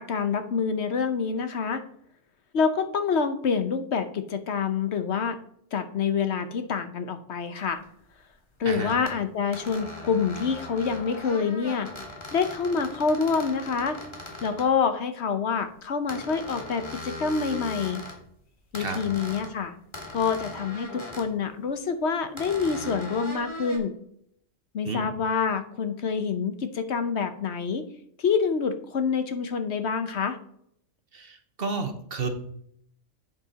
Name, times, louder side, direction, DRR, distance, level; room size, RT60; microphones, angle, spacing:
voice 1, 0.0-1.8 2.5-5.4 5.7-7.8 8.6-11.9 12.3-14.0 14.4-18.0 18.7-19.7 20.1-23.9 24.7-27.9 28.2-30.4, left 5 dB, 65° left, 9 dB, 1.1 m, -27 dB
sound 1, 7.8-7.9 8.7-9.2 9.5-14.7 16.1-18.2 18.7-19.5 19.9-21.3 22.4-23.8, left 1 dB, 20° left, 1.8 m, -39 dB
voice 2, 8.6-8.9 18.8-19.0 24.8-25.1 31.1-32.3, right 3 dB, 50° right, 6 dB, 1.3 m, -31 dB
8.3 x 7.0 x 4.1 m, 0.68 s
omnidirectional pair, 1.3 m